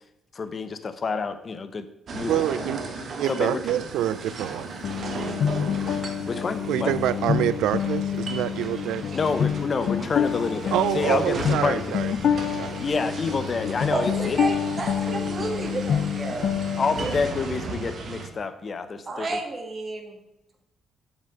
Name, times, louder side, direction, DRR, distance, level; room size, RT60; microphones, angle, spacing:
voice 1, 0.3-1.9 2.1-2.7 3.2-3.6 6.3-7.0 9.1-11.8 12.8-14.4 16.8-19.4, left 4 dB, 40° left, 11 dB, 0.7 m, -28 dB
sound 1, 2.1-18.3, right 3 dB, 55° right, 1.2 m, -36 dB
voice 2, 2.3-2.8 3.2-4.7 6.7-9.0 10.7-12.8, right 12 dB, 85° right, 17 dB, 0.3 m, -26 dB
sound 2, 4.8-17.2, left 8 dB, 65° left, 0.3 m, -27 dB
voice 3, 13.9-16.5 17.0-17.1 19.0-20.2, right 3 dB, 35° right, 3 dB, 1.7 m, -31 dB
7.1 x 5.1 x 5.1 m, 0.89 s
cardioid pair, 90°, 0 cm